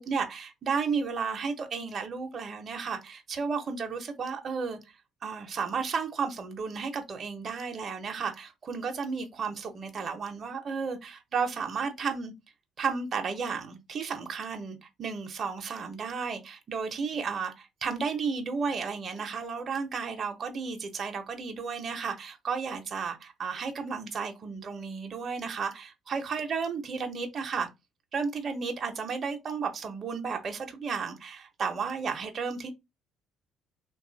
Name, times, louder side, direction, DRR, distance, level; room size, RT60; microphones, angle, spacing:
voice 1, 0.0-4.8 5.2-12.3 12.8-27.7 28.1-32.7, right 5 dB, 45° right, 0.7 m, -33 dB
3.0 x 2.3 x 3.8 m
supercardioid pair, 85°, 0 cm